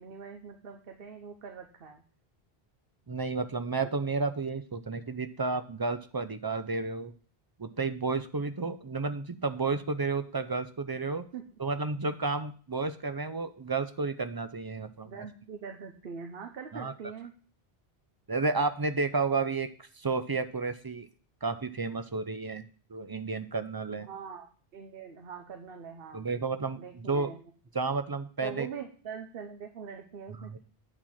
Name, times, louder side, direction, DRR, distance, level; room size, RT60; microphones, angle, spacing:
voice 1, 0.0-2.0 11.3-11.4 15.0-17.3 24.0-24.5 24.7-26.3 26.7-27.4 28.4-30.6, right 6 dB, 65° right, 4 dB, 1.1 m, -43 dB
voice 2, 3.1-7.1 7.6-11.3 11.6-15.1 16.7-16.9 18.3-21.1 21.4-24.1 26.1-27.3 27.7-28.7 30.4-30.6, right 4 dB, 40° right, 11 dB, 0.3 m, -32 dB
8.8 x 4.3 x 7.2 m, 0.40 s
omnidirectional pair, 1.1 m